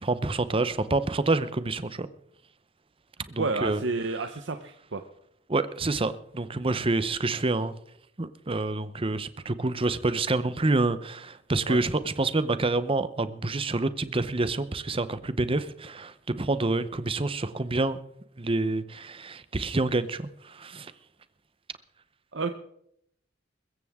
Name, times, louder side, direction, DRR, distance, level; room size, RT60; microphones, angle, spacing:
voice 1, 0.0-2.1 3.3-3.8 5.5-7.7 8.2-18.0 18.4-20.9, right 2 dB, 30° right, 0.8 m, -27 dB
voice 2, 3.4-5.0 11.7-11.8 22.3-22.5, right 3 dB, 70° right, 0.9 m, -30 dB
22.0 x 14.5 x 3.6 m
head